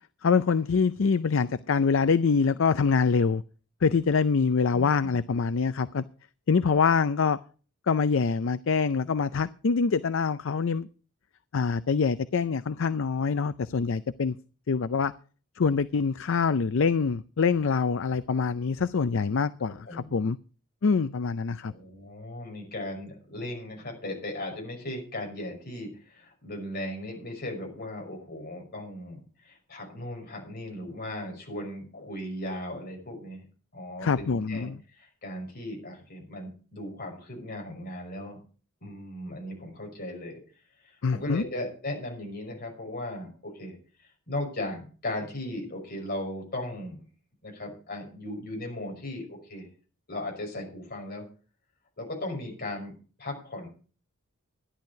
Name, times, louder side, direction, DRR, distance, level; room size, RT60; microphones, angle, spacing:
voice 1, 0.2-3.4 3.8-6.0 6.5-7.4 7.9-10.9 11.5-14.4 14.7-15.1 15.6-20.4 20.8-21.7 34.0-34.8 41.0-41.4, left 5 dB, 65° left, 0.5 m, -25 dB
voice 2, 19.7-20.2 21.6-33.5 33.7-38.4 38.8-40.4 40.8-43.7 44.0-47.0 47.4-49.7 50.1-51.3 52.0-53.7, left 1 dB, 50° left, 5.6 m, -37 dB
13.0 x 11.0 x 4.7 m
head